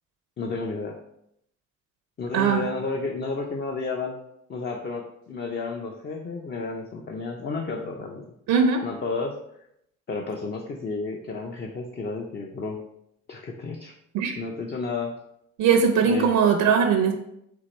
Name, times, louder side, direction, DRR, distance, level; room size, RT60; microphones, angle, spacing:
voice 1, 0.4-1.0 2.2-4.2 4.5-8.3 8.8-9.4 10.1-12.8 13.3-13.9 14.4-15.2 16.0-16.4, left 3 dB, 35° left, 2 dB, 0.5 m, -32 dB
voice 2, 2.3-2.7 8.5-8.8 14.1-14.3 15.6-17.1, right 6 dB, 85° right, 5 dB, 0.6 m, -20 dB
4.5 x 2.5 x 4.2 m, 0.77 s
cardioid pair, 90°, 30 cm